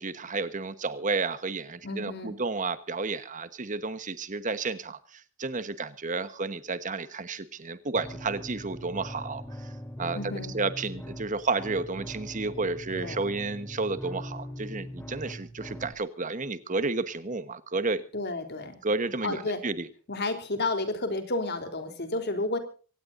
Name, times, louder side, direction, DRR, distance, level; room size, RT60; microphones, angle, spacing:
voice 1, 0.0-9.7 10.0-10.2 10.5-18.0 18.8-19.9, right 3 dB, 35° right, 12 dB, 1.2 m, -31 dB
voice 2, 1.8-2.4 10.1-10.5 12.9-13.2 18.1-18.8 19.2-19.6 20.1-22.6, left 2 dB, 50° left, 7 dB, 3.6 m, -31 dB
sound 1, 7.9-15.9, equal, 10° left, 3.2 m, -41 dB
25.0 x 17.5 x 2.6 m, 0.39 s
head